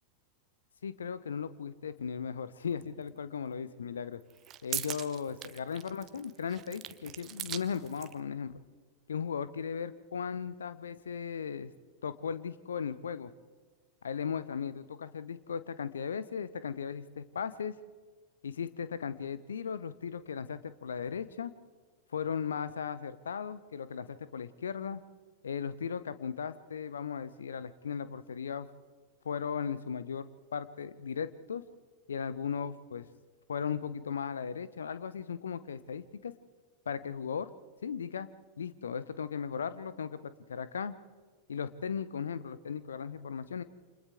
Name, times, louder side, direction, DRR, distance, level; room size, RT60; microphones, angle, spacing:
voice 1, 0.8-4.2 4.6-8.6 9.1-11.7 12.0-13.3 14.0-17.8 18.4-21.5 22.1-25.0 25.4-28.7 29.2-31.6 32.1-33.1 33.5-36.3 36.9-37.5 37.8-38.3 38.6-40.9 41.5-43.6, left 7 dB, 70° left, 15 dB, 0.9 m, -37 dB
sound 1, 2.8-2.9 4.2-8.2, right 11 dB, 30° right, 0.9 m, -41 dB
29.0 x 27.0 x 3.7 m, 1.5 s
figure-of-eight pair, 90°, 0 cm